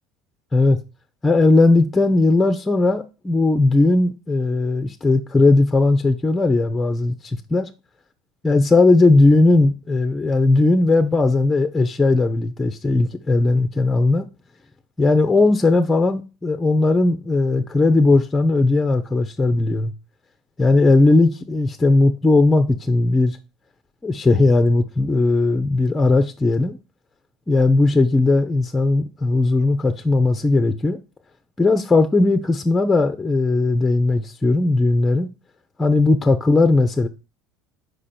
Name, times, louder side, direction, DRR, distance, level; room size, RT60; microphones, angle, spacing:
voice 1, 1.2-7.1 7.5-7.7 8.4-14.3 15.0-19.9 20.6-23.4 24.0-26.8 27.5-31.0 31.6-35.3 35.8-37.1, left 2 dB, 15° left, 0.7 m, -17 dB
4.9 x 4.9 x 4.3 m
supercardioid pair, 100°, 0 cm